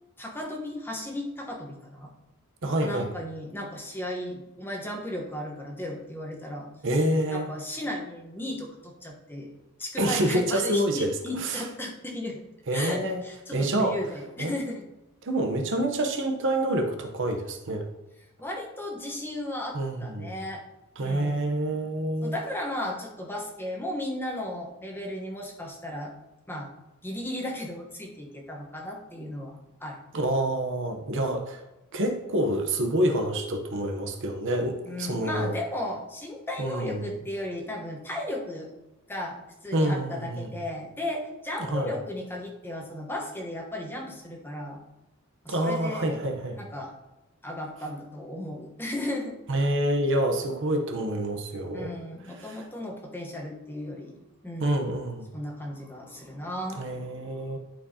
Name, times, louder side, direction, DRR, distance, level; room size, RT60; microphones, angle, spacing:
voice 1, 0.2-2.1 2.8-6.7 7.3-9.5 9.8-12.4 12.7-14.9 18.4-20.6 21.0-21.4 22.2-26.1 26.5-26.7 27.0-30.0 34.8-38.7 39.1-44.8 45.4-46.2 46.5-46.9 47.4-49.4 51.7-54.9 55.3-57.6, left 1 dB, 10° left, -1 dB, 1.1 m, -35 dB
voice 2, 2.6-3.1 6.8-7.5 10.0-11.1 11.4-11.6 12.7-13.2 13.5-14.0 14.4-14.5 15.2-17.9 19.7-20.3 21.0-22.4 30.1-31.6 31.9-35.5 36.6-37.1 39.7-40.5 41.6-41.9 45.5-46.6 49.5-51.9 52.4-52.6 54.6-55.3 56.8-57.6, right 1 dB, 55° right, 3 dB, 0.8 m, -27 dB
11.5 x 4.6 x 2.8 m, 0.97 s
head